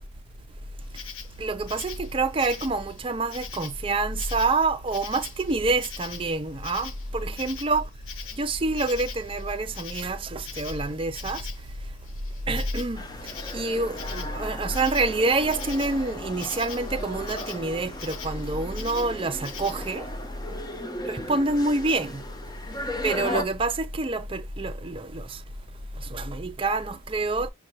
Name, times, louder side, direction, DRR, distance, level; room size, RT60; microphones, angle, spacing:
Insect, 0.8-20.0, left 7 dB, 80° left, 0.8 m, -43 dB
voice 1, 1.4-7.9 8.4-11.5 12.5-13.1 13.5-20.1 21.0-22.2 23.0-25.4 26.0-27.5, right 3 dB, 25° right, 0.5 m, -27 dB
sound 1, 12.9-23.4, left 1 dB, 20° left, 0.7 m, -37 dB
6.3 x 2.3 x 2.9 m
head